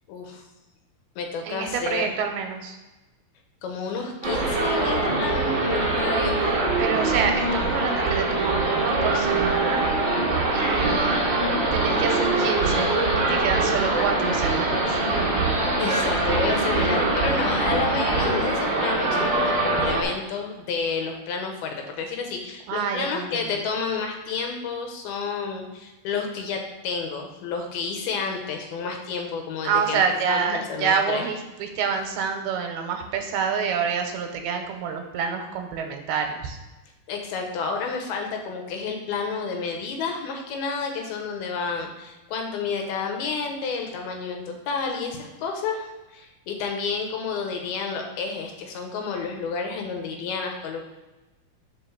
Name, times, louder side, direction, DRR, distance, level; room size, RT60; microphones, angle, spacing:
voice 1, 0.1-0.4 1.2-2.2 3.6-6.4 15.8-31.3 35.2-35.3 37.1-50.8, left 5 dB, 85° left, 3 dB, 2.8 m, -30 dB
voice 2, 1.4-2.8 6.8-9.9 10.5-11.1 11.7-15.0 22.7-23.6 29.6-36.6, right 6 dB, 90° right, 5 dB, 2.7 m, -27 dB
sound 1, 4.2-20.0, right 2 dB, 65° right, 1.1 m, -23 dB
5.7 x 5.0 x 5.7 m, 1.1 s
omnidirectional pair, 4.4 m